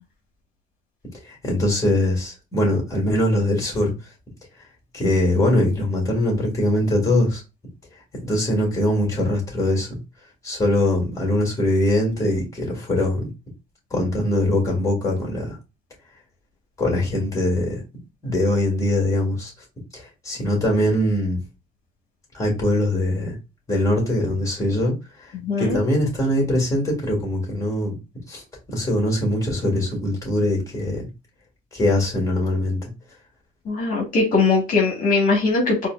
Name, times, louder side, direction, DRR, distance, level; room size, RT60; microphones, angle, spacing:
voice 1, 1.2-3.9 4.9-7.4 8.2-10.0 10.4-13.3 13.9-15.6 16.8-17.8 18.2-19.5 19.9-21.4 22.3-23.4 23.7-24.9 25.2-25.3 25.6-28.0 28.3-28.4 28.7-31.0 31.7-32.9, left 1 dB, 20° left, 2.0 m, -22 dB
voice 2, 25.4-25.8 33.7-35.9, left 3 dB, 50° left, 1.2 m, -20 dB
4.4 x 2.3 x 2.3 m
cardioid pair, 110°, 17 cm